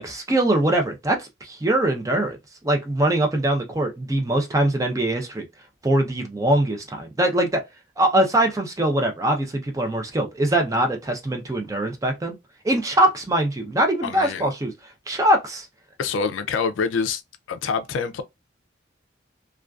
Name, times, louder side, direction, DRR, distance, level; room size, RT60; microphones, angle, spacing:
voice 1, 0.0-2.4 2.6-5.4 5.8-7.6 8.0-12.3 12.6-14.7 15.1-15.7, right 1 dB, 15° right, 0.4 m, -22 dB
voice 2, 14.0-14.5 16.0-17.2 17.5-18.2, left 5 dB, 85° left, 0.4 m, -26 dB
2.4 x 2.2 x 2.2 m
head